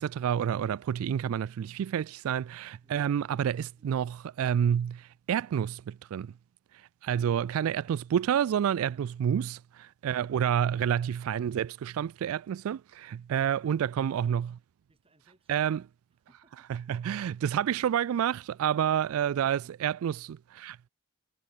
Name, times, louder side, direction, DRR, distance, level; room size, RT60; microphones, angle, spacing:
voice 1, 0.0-6.3 6.7-14.5 15.5-15.8 16.7-20.9, right 9 dB, 80° right, 0.3 m, -29 dB
voice 2, 3.5-3.9 8.9-9.1 13.3-14.4 14.9-15.7 16.3-17.0 19.3-19.7, right 1 dB, 25° right, 4.9 m, -65 dB
head